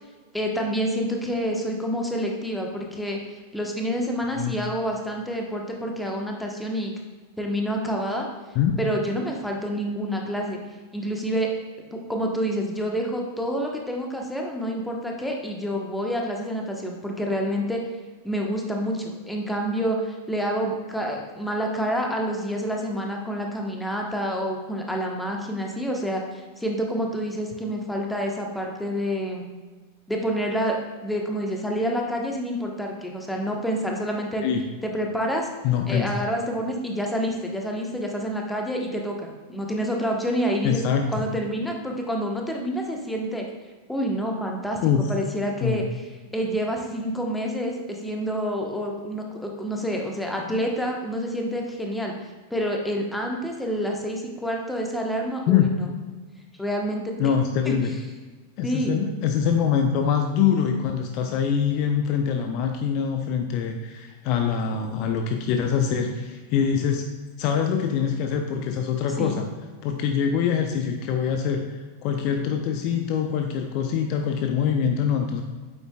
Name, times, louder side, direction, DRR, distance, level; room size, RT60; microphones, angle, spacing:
voice 1, 0.3-6.9 7.4-8.3 8.8-10.6 10.9-11.5 11.9-17.8 18.2-29.5 30.1-34.4 34.8-35.5 35.9-40.8 41.1-43.4 43.9-44.8 45.1-46.0 46.3-55.9 56.6-57.3 57.7-57.8 58.6-58.9 69.2-69.4, equal, 5° left, 0 dB, 1.2 m, -28 dB
voice 2, 35.6-36.2 40.6-41.3 44.8-45.0 45.6-45.8 50.5-50.6 55.5-55.7 57.2-57.9 58.6-67.1 67.4-69.5 69.8-71.7 72.0-75.4, left 7 dB, 40° left, 4 dB, 0.6 m, -24 dB
9.1 x 7.3 x 2.3 m, 1.4 s
figure-of-eight pair, 90°, 0 cm